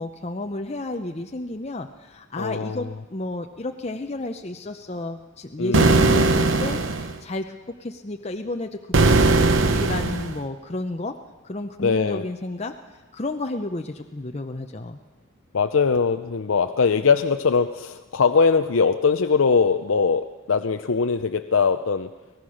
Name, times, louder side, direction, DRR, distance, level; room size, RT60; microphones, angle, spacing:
voice 1, 0.0-11.1 11.4-12.7 13.1-15.0, left 2 dB, 30° left, 5 dB, 0.7 m, -32 dB
voice 2, 2.4-2.9 5.6-6.3 11.8-12.2 15.5-22.1, left 5 dB, 70° left, 8 dB, 0.6 m, -21 dB
sound 1, 5.7-7.1 8.9-10.4, right 3 dB, 65° right, 1.1 m, -19 dB
23.5 x 18.0 x 6.3 m, 1.2 s
head